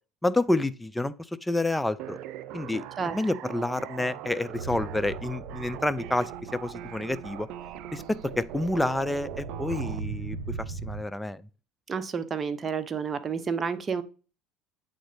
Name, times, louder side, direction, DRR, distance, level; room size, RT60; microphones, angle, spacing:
voice 1, 0.2-1.1 1.4-2.2 2.5-7.5 7.9-10.4 10.7-11.4, left 2 dB, 10° left, 0.5 m, -29 dB
sound 1, 2.0-10.0, right 12 dB, 60° right, 0.5 m, -41 dB
sound 2, 4.4-11.0, right 4 dB, 90° right, 0.8 m, -39 dB
voice 2, 11.9-14.0, right 6 dB, 30° right, 0.8 m, -30 dB
8.8 x 3.8 x 3.5 m
hypercardioid pair, 80°, 0 cm